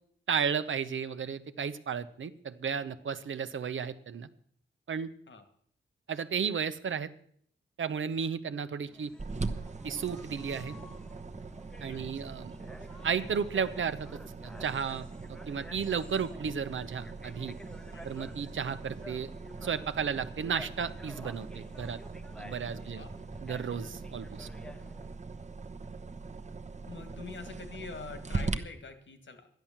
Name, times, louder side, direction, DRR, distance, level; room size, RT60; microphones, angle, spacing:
voice 1, 0.3-4.3 4.9-5.1 6.1-7.1 7.8-9.1 9.8-10.7 11.8-12.5 13.0-17.6 18.0-19.3 19.6-22.0 22.4-23.0 23.4-24.5, right 6 dB, 70° right, 11 dB, 0.9 m, -33 dB
sound 1, 8.9-25.2, left 1 dB, 5° left, 0.9 m, -52 dB
sound 2, 9.2-28.6, right 3 dB, 35° right, 1.0 m, -41 dB
voice 2, 11.9-12.4 12.8-13.1 17.9-18.2 22.7-23.2 23.5-23.8 24.8-25.0 26.8-29.5, left 4 dB, 65° left, 8 dB, 2.2 m, -46 dB
12.5 x 10.5 x 7.3 m, 0.63 s
wide cardioid pair, 85°, 21 cm